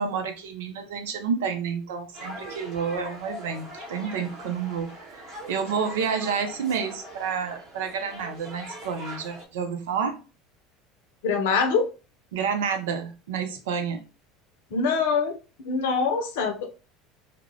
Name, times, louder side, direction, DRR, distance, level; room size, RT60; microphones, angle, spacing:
voice 1, 0.0-10.2 12.3-14.0, right 6 dB, 80° right, 6 dB, 0.5 m, -29 dB
sound 1, 2.1-9.4, equal, 45° right, 1.1 m, -41 dB
voice 2, 11.2-11.9 14.7-15.3 15.6-16.7, left 5 dB, 75° left, 4 dB, 0.6 m, -24 dB
2.3 x 2.1 x 3.1 m, 0.33 s
hypercardioid pair, 80°, 0 cm